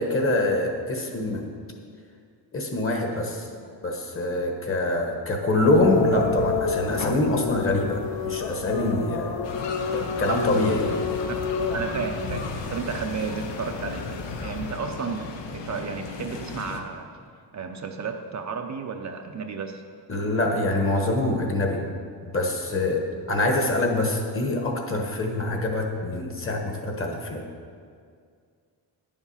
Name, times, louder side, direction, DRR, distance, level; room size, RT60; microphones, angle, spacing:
voice 1, 0.0-1.5 2.5-3.4 3.8-9.3 9.9-11.0 20.1-21.8 22.3-27.4, left 2 dB, 30° left, 2 dB, 1.3 m, -25 dB
sound 1, 5.6-14.7, left 4 dB, 55° left, 0.8 m, -29 dB
sound 2, 9.4-16.8, left 4 dB, 80° left, 1.1 m, -36 dB
voice 2, 11.7-17.1 17.5-19.8, right 5 dB, 40° right, 4 dB, 0.6 m, -33 dB
10.5 x 7.2 x 5.5 m, 2.2 s
wide cardioid pair, 160°, 43 cm